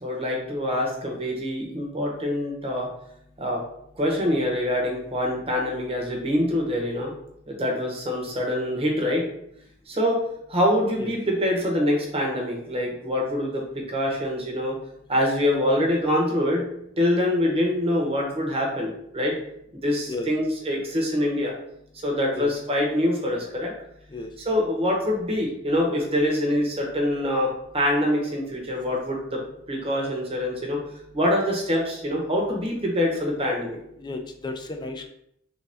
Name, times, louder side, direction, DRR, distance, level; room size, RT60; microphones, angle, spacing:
voice 1, 0.0-2.9 3.4-3.6 4.0-7.1 7.5-9.3 9.9-10.2 10.5-14.8 15.1-16.7 17.0-19.4 19.7-21.5 22.0-23.7 24.4-29.4 29.7-30.8 31.1-33.8, left 1 dB, 30° right, -1 dB, 0.8 m, -25 dB
voice 2, 34.0-35.1, left 3 dB, 20° left, 4 dB, 0.4 m, -33 dB
3.3 x 2.6 x 3.3 m, 0.74 s
head